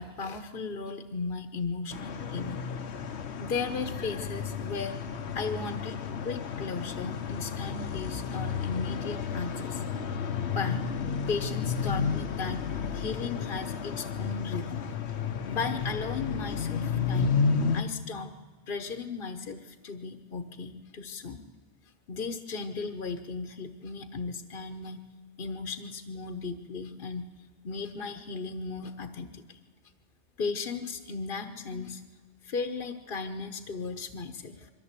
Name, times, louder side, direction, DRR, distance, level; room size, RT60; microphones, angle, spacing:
voice 1, 0.0-2.6 3.4-5.0 5.3-9.8 10.3-10.8 11.3-12.6 12.9-14.8 15.5-17.4 17.7-18.3 18.7-21.4 22.1-25.0 25.4-27.2 27.6-29.6 30.4-32.0 32.4-34.7, left 4 dB, 50° left, 5 dB, 1.2 m, -36 dB
sound 1, 1.9-17.8, left 6 dB, 70° left, 1.2 m, -32 dB
23.0 x 14.5 x 8.3 m, 1.4 s
omnidirectional pair, 1.2 m